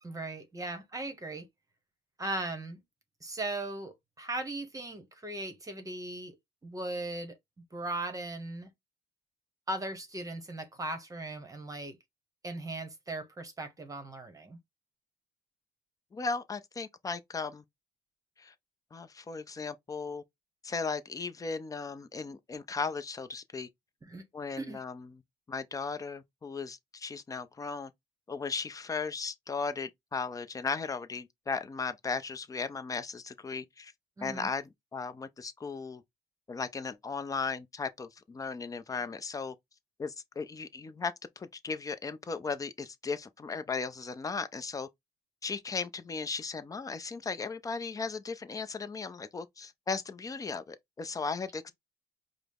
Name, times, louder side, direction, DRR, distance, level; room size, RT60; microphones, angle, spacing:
voice 1, 0.0-1.5 2.2-2.8 3.2-6.3 6.6-7.4 7.7-8.7 9.7-12.0 12.4-14.6 24.0-24.3 24.6-24.8 34.2-34.5, right 2 dB, 20° right, 1.0 m, -38 dB
voice 2, 16.1-17.6 18.4-18.5 18.9-20.2 20.6-23.7 24.3-25.1 25.5-27.9 28.3-33.9 34.2-36.0 36.5-39.5 40.0-44.9 45.4-51.7, left 4 dB, 20° left, 0.5 m, -36 dB
4.8 x 2.1 x 3.5 m
cardioid pair, 110°, 17 cm